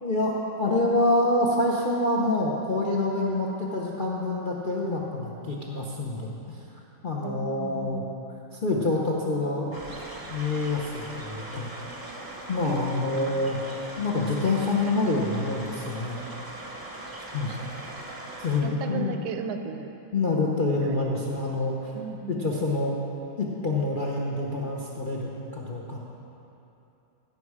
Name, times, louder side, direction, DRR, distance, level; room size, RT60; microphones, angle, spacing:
voice 1, 0.0-6.6 7.0-8.0 8.5-9.7 10.3-11.7 12.5-13.6 14.0-16.2 17.3-17.5 18.4-19.2 20.1-21.9 22.3-23.0 23.4-26.1, left 2 dB, 65° left, -3 dB, 0.5 m, -27 dB
voice 2, 7.2-8.2 12.6-13.3 17.5-17.6 18.6-19.9 20.7-21.3 21.9-22.5, right 6 dB, 80° right, 6 dB, 1.5 m, -36 dB
sound 1, 9.7-18.6, right 1 dB, 20° right, 0.6 m, -40 dB
16.0 x 6.1 x 4.8 m, 2.9 s
omnidirectional pair, 2.3 m